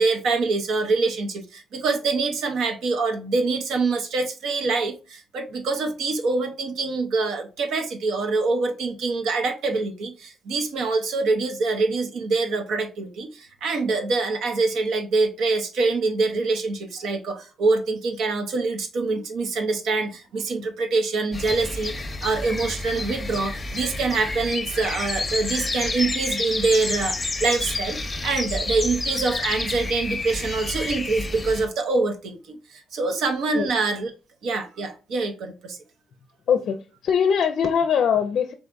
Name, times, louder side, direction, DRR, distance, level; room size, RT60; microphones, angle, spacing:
voice 1, 0.0-21.9 22.2-34.1 34.4-35.8, right 3 dB, 75° right, 0.8 m, -25 dB
sound 1, 21.3-31.7, left 2 dB, 25° left, 0.7 m, -29 dB
voice 2, 36.5-38.5, left 7 dB, 65° left, 0.4 m, -22 dB
4.1 x 3.3 x 2.5 m
cardioid pair, 90°, 0 cm